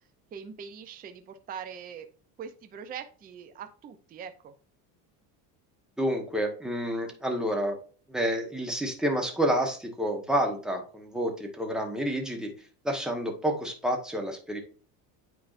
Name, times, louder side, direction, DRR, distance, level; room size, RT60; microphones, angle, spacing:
voice 1, 0.3-2.1 2.4-4.5, right 7 dB, 20° right, 8 dB, 0.5 m, -42 dB
voice 2, 6.0-7.8 8.1-12.5 12.8-14.6, equal, ahead, 2 dB, 1.1 m, -29 dB
8.9 x 4.6 x 2.5 m, 0.41 s
cardioid pair, 150°, 45 cm